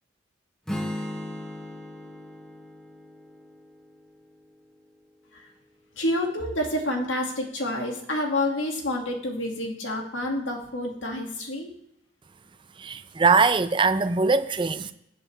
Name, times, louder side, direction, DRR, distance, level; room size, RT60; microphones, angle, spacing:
Strum, 0.7-4.8, left 1 dB, 5° left, 1.0 m, -37 dB
voice 1, 5.9-11.7, left 1 dB, 90° left, 2.1 m, -28 dB
voice 2, 12.8-14.9, right 4 dB, 25° right, 0.5 m, -22 dB
18.0 x 6.6 x 3.4 m
head